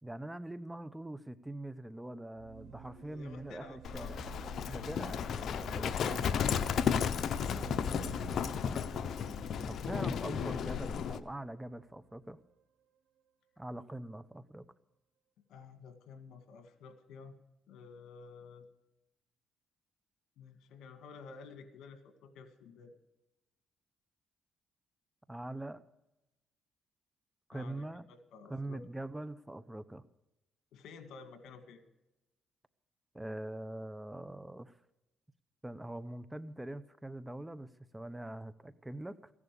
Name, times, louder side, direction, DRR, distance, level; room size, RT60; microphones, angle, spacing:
voice 1, 0.0-4.2 4.7-6.3 9.6-12.4 13.6-14.7 25.3-25.8 27.5-28.1 28.5-30.0 33.1-34.7 35.6-39.3, right 1 dB, 10° right, 15 dB, 0.8 m, -43 dB
sound 1, 2.4-12.2, right 8 dB, 80° right, 0.7 m, -51 dB
voice 2, 2.9-4.1 15.5-17.4 17.7-18.7 20.4-22.9 27.5-28.8 30.7-31.8, left 5 dB, 80° left, 8 dB, 2.1 m, -52 dB
Livestock farm animals working animals, 3.8-11.2, left 7 dB, 65° left, 0.8 m, -34 dB
15.5 x 11.0 x 6.8 m, 0.94 s
cardioid pair, 90°, 0 cm